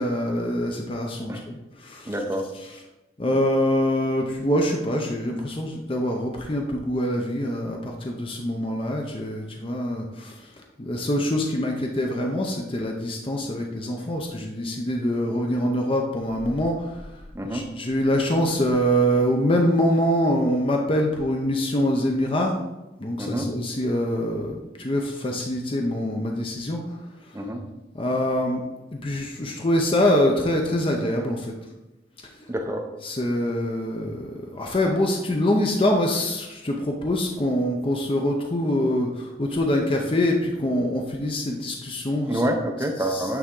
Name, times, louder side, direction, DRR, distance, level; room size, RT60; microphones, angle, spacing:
voice 1, 0.0-2.2 2.7-2.8 3.2-10.3 10.8-17.1 17.5-22.6 23.0-27.0 27.3-27.4 27.9-28.6 28.9-31.5 33.0-42.4 43.0-43.3, equal, 30° left, 1 dB, 0.6 m, -24 dB
voice 2, 2.1-2.5 17.3-17.7 23.2-23.5 27.3-27.6 32.5-32.9 42.3-43.4, right 1 dB, 15° right, 3 dB, 0.6 m, -27 dB
8.8 x 3.5 x 3.7 m, 1.0 s
head